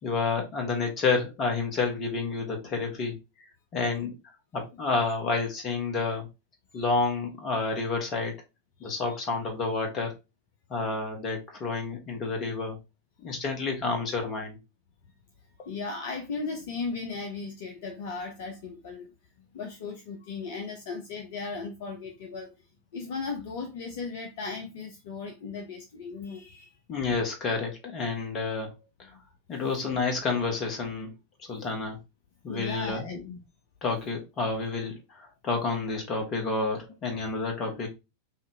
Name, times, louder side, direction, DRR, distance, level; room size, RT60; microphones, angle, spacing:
voice 1, 0.0-3.2 3.7-4.1 4.5-6.3 6.7-8.3 8.8-10.1 10.7-12.8 13.2-14.6 26.9-28.7 29.5-31.1 31.5-32.0 32.4-33.1 33.8-37.9, left 4 dB, 30° left, 1.5 m, -29 dB
voice 2, 15.6-19.1 19.5-22.5 22.9-26.7 29.1-29.2 32.5-33.2, left 4 dB, 55° left, 0.7 m, -36 dB
5.7 x 2.7 x 2.8 m
figure-of-eight pair, 90°, 0 cm